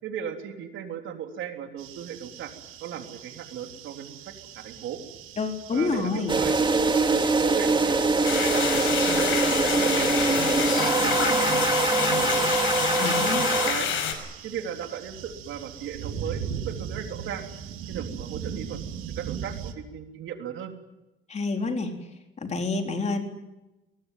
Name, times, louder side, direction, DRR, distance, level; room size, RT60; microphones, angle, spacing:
voice 1, 0.0-2.5 2.8-4.2 4.5-5.0 5.7-6.6 7.2-8.6 8.9-10.1 10.8-12.5 13.5-13.9 14.4-17.4 17.9-18.8 19.2-20.7, right 8 dB, 70° right, 5 dB, 3.6 m, -36 dB
sound 1, 1.8-19.7, right 8 dB, 90° right, 2.7 m, -40 dB
voice 2, 5.4-6.3 13.0-13.4 21.3-21.9 22.4-23.2, left 4 dB, 35° left, 4 dB, 4.1 m, -28 dB
sound 2, 6.3-13.7, right 3 dB, 20° right, 2.4 m, -23 dB
sound 3, 8.2-14.1, left 8 dB, 75° left, 5.5 m, -28 dB
23.0 x 20.0 x 9.3 m, 0.99 s
cardioid pair, 120°, 21 cm